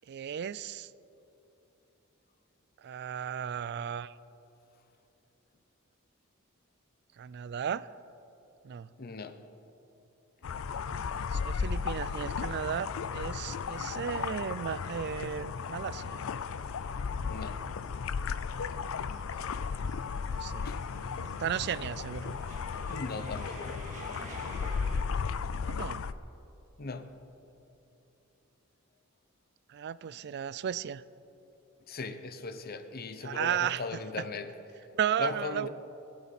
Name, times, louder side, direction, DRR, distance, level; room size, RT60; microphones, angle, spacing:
voice 1, 0.1-0.9 2.8-4.1 7.2-7.9 8.6-8.9 11.3-16.2 20.3-20.7 21.1-22.3 25.6-26.0 29.7-31.0 33.2-33.8 34.9-35.7, right 8 dB, 55° right, 17 dB, 0.4 m, -34 dB
voice 2, 9.0-9.4 10.4-10.5 17.2-17.6 20.6-20.8 22.9-23.8 26.8-27.2 30.0-30.2 31.9-34.9 35.2-35.7, left 3 dB, 45° left, 10 dB, 0.8 m, -39 dB
sound 1, 10.4-26.1, left 5 dB, 70° left, 0.4 m, -35 dB
sound 2, 16.3-25.0, right 1 dB, 40° right, 2.4 m, -51 dB
22.0 x 8.7 x 4.2 m, 2.9 s
head